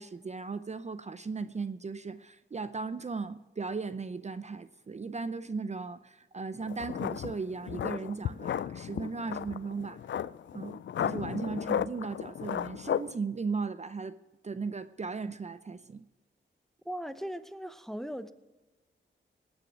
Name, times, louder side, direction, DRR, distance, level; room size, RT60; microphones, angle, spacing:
voice 1, 0.0-10.0 10.5-14.2 14.4-16.0, right 4 dB, 35° right, 0.6 m, -37 dB
sound 1, 6.6-13.2, left 9 dB, 70° left, 0.4 m, -34 dB
voice 2, 16.8-18.3, equal, ahead, 0.8 m, -38 dB
19.0 x 7.0 x 6.1 m
cardioid pair, 65°, 20 cm